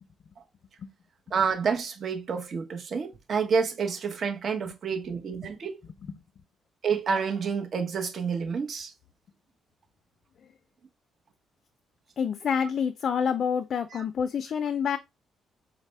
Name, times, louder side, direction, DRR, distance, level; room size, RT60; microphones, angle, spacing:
voice 1, 1.3-5.8 6.8-8.9, right 6 dB, 50° right, 0.9 m, -29 dB
voice 2, 12.2-15.0, left 7 dB, 55° left, 0.4 m, -28 dB
4.1 x 2.0 x 3.3 m
cardioid pair, 90°, 0 cm